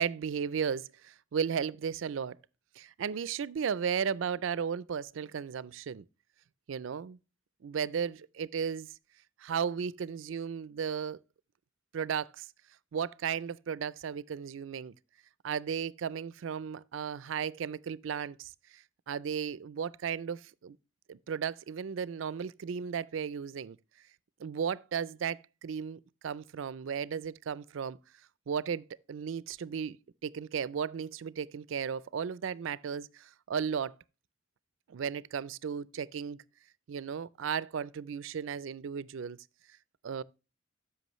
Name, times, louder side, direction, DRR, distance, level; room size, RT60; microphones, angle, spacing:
voice 1, 0.0-2.4 2.8-6.0 6.7-7.2 7.6-8.9 9.4-11.2 11.9-12.5 12.9-14.9 15.4-20.8 21.1-23.8 24.4-28.0 28.5-30.0 30.2-33.9 34.9-36.4 36.9-39.4 40.0-40.2, right 7 dB, 80° right, 0.4 m, -35 dB
13.5 x 5.8 x 3.0 m
head